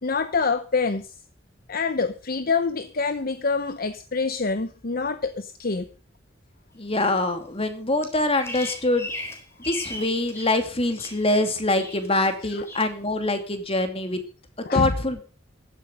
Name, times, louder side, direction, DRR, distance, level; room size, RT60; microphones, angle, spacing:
voice 1, 0.0-1.2 1.7-5.9 12.4-12.6 14.6-15.0, left 4 dB, 50° left, 11 dB, 0.9 m, -26 dB
voice 2, 6.8-9.1 9.6-14.2 14.7-15.2, left 2 dB, 30° left, 7 dB, 2.7 m, -24 dB
Bird vocalization bird call bird song, 8.0-10.6 10.9-11.5 11.8-12.3 12.7-12.9, left 1 dB, 15° left, 3.9 m, -37 dB
15.5 x 12.0 x 5.3 m, 0.38 s
head